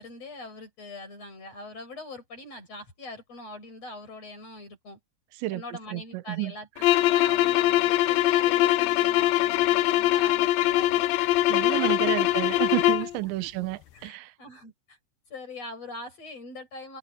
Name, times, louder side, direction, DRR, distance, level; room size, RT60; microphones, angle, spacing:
voice 1, 0.0-5.0 5.5-11.1 11.7-12.3 12.8-13.1 13.4-13.5 13.9-15.0 15.3-17.0, left 2 dB, 35° left, 8.1 m, -42 dB
voice 2, 5.9-6.5 6.8-7.0 11.5-14.3, right 19 dB, 85° right, 3.2 m, -31 dB
sound 1, 6.8-13.1, left 15 dB, 85° left, 2.1 m, -22 dB
omnidirectional pair, 5.1 m